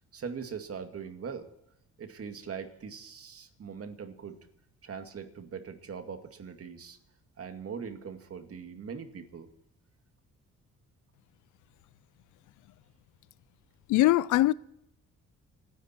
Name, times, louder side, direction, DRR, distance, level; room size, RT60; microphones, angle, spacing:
voice 1, 0.1-1.5 2.0-4.4 4.8-7.0 7.4-9.5, right 6 dB, 50° right, 2.3 m, -41 dB
voice 2, 13.9-14.5, left 16 dB, 80° left, 0.6 m, -21 dB
27.5 x 10.5 x 4.5 m
cardioid pair, 90°, 30 cm